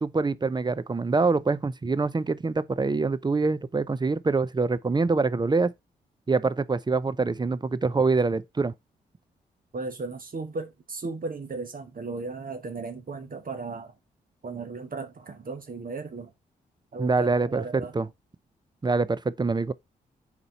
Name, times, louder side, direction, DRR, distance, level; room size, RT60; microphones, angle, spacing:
voice 1, 0.0-5.7 6.3-8.7 17.0-18.1 18.8-19.7, right 3 dB, 20° right, 0.5 m, -25 dB
voice 2, 9.7-13.9 14.4-16.3 16.9-17.9, right 3 dB, 45° right, 1.3 m, -36 dB
4.4 x 3.9 x 5.5 m
hypercardioid pair, 40°, 20 cm